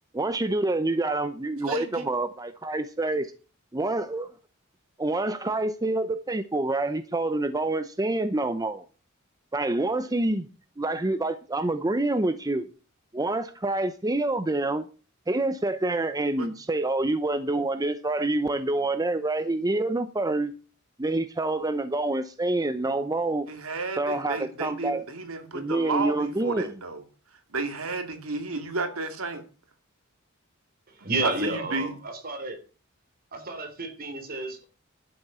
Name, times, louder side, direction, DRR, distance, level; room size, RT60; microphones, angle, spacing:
voice 1, 0.1-3.3 3.7-4.3 5.0-8.8 9.5-10.5 10.8-12.7 13.1-14.8 15.3-20.5 21.0-23.5 24.0-25.0 25.5-26.7, right 2 dB, 15° right, 0.7 m, -27 dB
voice 2, 1.7-2.0 16.4-16.5 23.5-27.0 27.5-29.4 31.2-31.9, right 3 dB, 70° right, 2.3 m, -32 dB
voice 3, 30.9-32.6 33.3-34.7, right 2 dB, 45° right, 3.2 m, -31 dB
12.0 x 7.4 x 6.8 m
head